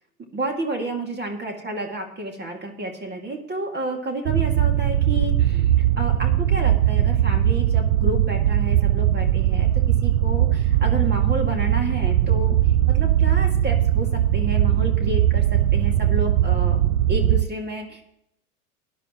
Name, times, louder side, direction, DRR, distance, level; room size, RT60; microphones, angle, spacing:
voice 1, 0.3-16.8 17.1-18.0, right 1 dB, 20° right, 3 dB, 2.2 m, -31 dB
sound 1, 4.3-17.4, right 11 dB, 65° right, 0.7 m, -20 dB
17.5 x 11.0 x 3.0 m, 0.74 s
hypercardioid pair, 105°, 44 cm